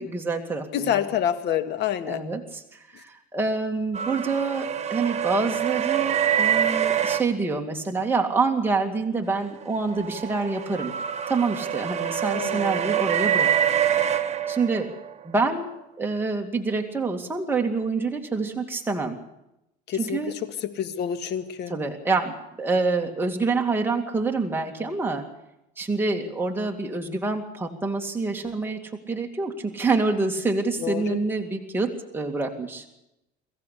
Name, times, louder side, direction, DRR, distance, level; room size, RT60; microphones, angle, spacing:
voice 1, 0.0-0.9 2.1-10.9 11.3-13.5 14.5-14.9 15.2-15.7 16.0-19.2 20.0-20.3 21.7-25.3 25.8-32.9, right 3 dB, 10° right, 1 dB, 2.3 m, -26 dB
voice 2, 0.7-2.2 12.3-12.9 19.9-21.7 30.8-31.2, left 9 dB, 60° left, 10 dB, 1.9 m, -28 dB
sound 1, 3.9-7.2 9.6-15.1, right 9 dB, 35° right, 1.4 m, -25 dB
23.5 x 15.0 x 8.5 m, 0.86 s
cardioid pair, 120°, 20 cm